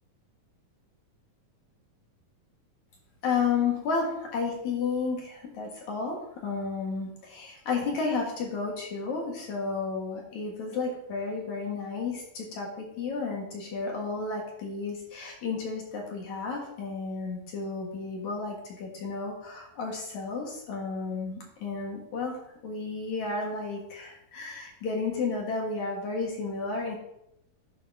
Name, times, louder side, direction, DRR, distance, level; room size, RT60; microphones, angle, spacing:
voice 1, 3.2-27.0, left 4 dB, 60° left, -1 dB, 2.6 m, -32 dB
11.0 x 4.1 x 5.3 m, 0.80 s
omnidirectional pair, 4.2 m